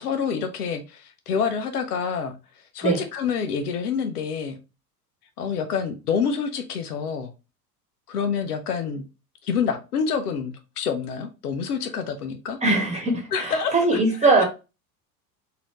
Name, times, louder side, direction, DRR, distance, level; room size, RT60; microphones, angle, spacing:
voice 1, 0.0-2.3 2.7-4.6 5.4-7.3 8.1-9.1 9.4-12.6 13.3-14.5, left 6 dB, 70° left, 0.8 m, -27 dB
voice 2, 12.6-14.5, right 3 dB, 15° right, 1.4 m, -21 dB
4.0 x 2.8 x 3.0 m
figure-of-eight pair, 75°, 47 cm